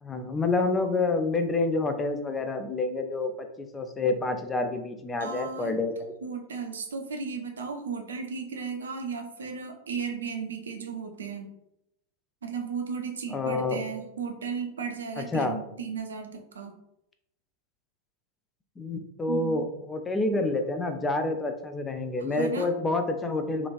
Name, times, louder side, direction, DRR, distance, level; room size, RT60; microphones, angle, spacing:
voice 1, 0.0-6.1 13.3-13.9 15.2-15.6 18.8-23.7, left 3 dB, 15° left, 7 dB, 0.3 m, -28 dB
voice 2, 5.2-5.7 6.2-11.5 12.4-16.7 19.3-19.6 22.3-22.7, right 5 dB, 65° right, 4 dB, 0.4 m, -35 dB
2.9 x 2.4 x 2.4 m, 0.82 s
figure-of-eight pair, 90°, 0 cm